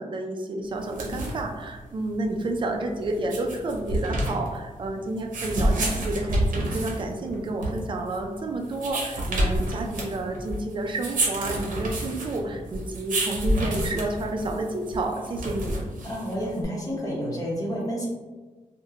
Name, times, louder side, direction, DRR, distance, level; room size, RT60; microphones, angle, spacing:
voice 1, 0.0-15.8, right 2 dB, 40° right, 2 dB, 0.3 m, -30 dB
sound 1, 0.8-16.6, right 1 dB, 85° right, 0.6 m, -29 dB
voice 2, 16.0-18.1, equal, 25° left, -5 dB, 0.8 m, -30 dB
2.9 x 2.1 x 2.4 m, 1.3 s
wide cardioid pair, 135°, 13 cm